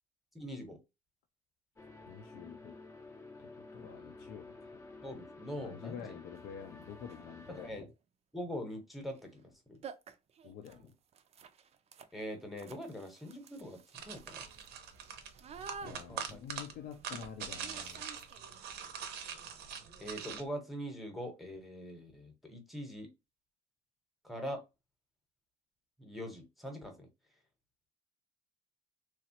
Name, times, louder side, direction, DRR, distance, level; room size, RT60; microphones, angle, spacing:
voice 1, 0.3-0.8 5.0-6.1 7.5-7.9 8.3-9.8 10.8-10.9 12.1-14.5 15.9-16.4 20.0-23.1 24.2-24.6 26.0-27.1, equal, ahead, 0.9 m, -43 dB
sound 1, 1.8-7.7, left 3 dB, 15° left, 0.6 m, -52 dB
voice 2, 2.1-2.8 3.4-4.8 5.6-7.8 10.4-10.9 15.8-18.1, left 8 dB, 70° left, 0.5 m, -48 dB
sound 2, 6.4-6.5 7.0-7.4 9.1-9.2 9.5-9.6 9.8-18.7, right 6 dB, 40° right, 0.4 m, -52 dB
sound 3, 13.9-20.4, right 7 dB, 80° right, 0.7 m, -43 dB
3.0 x 2.3 x 2.8 m
cardioid pair, 110°, 17 cm